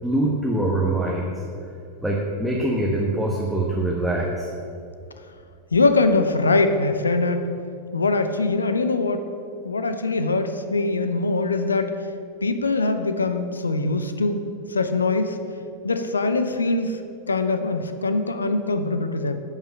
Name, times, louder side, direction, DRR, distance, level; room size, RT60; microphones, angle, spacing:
voice 1, 0.0-1.3 2.0-4.5, right 1 dB, ahead, -3 dB, 1.2 m, -23 dB
voice 2, 5.7-7.5 7.9-9.2 9.6-11.9 12.4-15.4 15.8-17.0 17.3-19.4, left 3 dB, 75° left, 9 dB, 0.6 m, -22 dB
10.5 x 5.8 x 5.9 m, 2.4 s
figure-of-eight pair, 90°, 0 cm